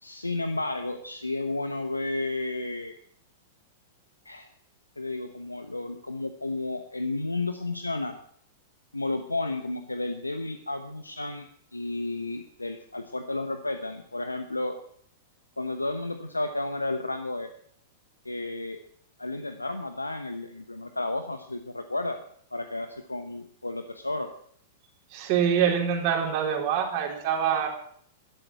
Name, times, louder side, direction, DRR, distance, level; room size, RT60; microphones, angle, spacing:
voice 1, 0.0-2.9 4.2-4.5 5.0-8.1 8.9-14.8 15.6-17.5 18.2-18.8 19.2-22.2 22.5-24.3, left 2 dB, 85° left, 8 dB, 1.0 m, -32 dB
voice 2, 25.1-27.7, right 8 dB, 45° right, 1 dB, 4.0 m, -25 dB
12.5 x 12.0 x 7.6 m, 0.63 s
figure-of-eight pair, 100°, 0 cm